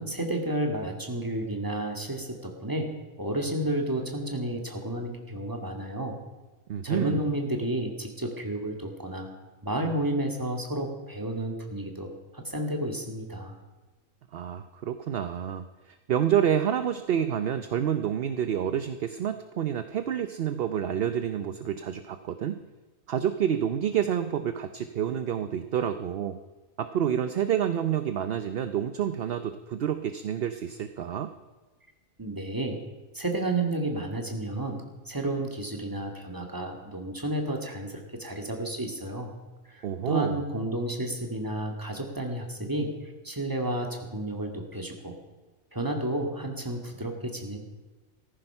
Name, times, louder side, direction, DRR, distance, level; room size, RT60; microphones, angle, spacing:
voice 1, 0.0-2.9 3.2-6.2 6.8-9.3 9.6-13.5 32.2-32.8 33.1-39.3 39.7-42.9 43.2-45.2 45.7-47.6, right 1 dB, 15° right, 2 dB, 2.0 m, -31 dB
voice 2, 6.7-7.3 14.3-22.6 23.1-26.4 26.8-31.3 39.8-40.4, right 9 dB, 55° right, 10 dB, 0.8 m, -28 dB
15.5 x 14.0 x 5.7 m, 1.3 s
omnidirectional pair, 1.4 m